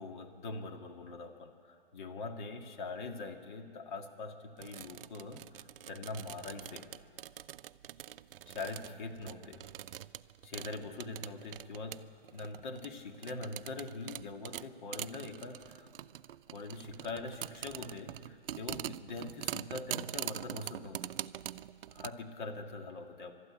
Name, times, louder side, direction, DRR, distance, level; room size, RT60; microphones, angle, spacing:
voice 1, 0.0-6.9 8.5-9.6 10.4-12.0 12.3-15.9 16.5-21.1 21.9-23.3, left 3 dB, 50° left, 5 dB, 1.9 m, -43 dB
sound 1, 4.6-22.1, right 11 dB, 65° right, 0.5 m, -44 dB
22.0 x 12.5 x 9.6 m, 2.3 s
hypercardioid pair, 150°, 30 cm